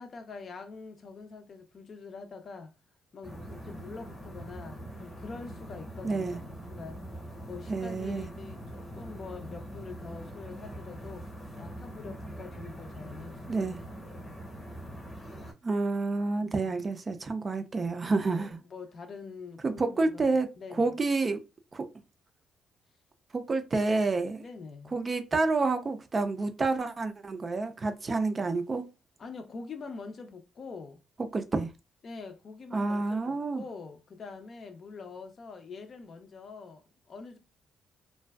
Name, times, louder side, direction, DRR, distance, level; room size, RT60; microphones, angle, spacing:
voice 1, 0.0-2.7 3.1-7.0 7.5-11.3 11.6-13.8 14.0-14.3 16.4-16.7 18.3-20.3 20.5-20.9 24.4-24.9 29.2-31.0 32.0-37.4, left 4 dB, 50° left, 0.5 m, -45 dB
sound 1, 3.2-15.5, equal, 10° left, 0.8 m, -43 dB
voice 2, 6.0-6.4 7.7-8.3 13.5-13.8 15.6-18.6 19.6-20.5 20.8-21.4 21.7-21.9 23.3-24.4 24.9-28.8 31.3-31.7 32.7-33.6, right 3 dB, 30° right, 0.4 m, -29 dB
2.5 x 2.2 x 2.2 m
cardioid pair, 90°, 0 cm